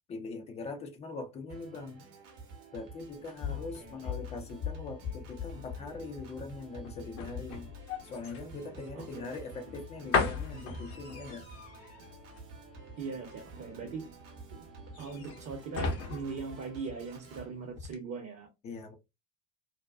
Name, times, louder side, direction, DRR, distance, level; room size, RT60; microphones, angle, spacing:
voice 1, 0.1-2.0 2.7-7.7 8.0-11.5 18.6-19.0, left 3 dB, 15° left, 0.3 m, -42 dB
Organ, 1.5-17.5, right 4 dB, 60° right, 0.9 m, -51 dB
sound 1, 3.0-17.4 17.7-18.0, left 5 dB, 60° left, 0.7 m, -38 dB
voice 2, 3.5-3.9 9.0-9.4 13.0-14.1 14.5-14.7 15.0-18.5, right 4 dB, 35° right, 0.7 m, -40 dB
2.5 x 2.2 x 2.2 m
figure-of-eight pair, 60°, 48 cm